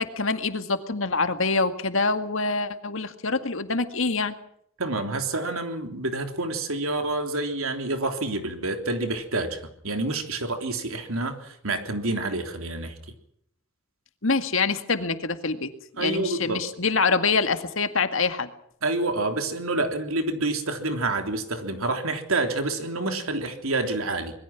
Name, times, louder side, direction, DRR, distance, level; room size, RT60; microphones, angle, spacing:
voice 1, 0.0-4.3 14.2-15.7 16.0-18.5, left 4 dB, 65° left, 8 dB, 2.0 m, -25 dB
voice 2, 4.8-12.9 16.0-16.6 18.8-24.3, right 2 dB, 75° right, 6 dB, 3.4 m, -28 dB
25.5 x 21.5 x 6.0 m, 0.69 s
head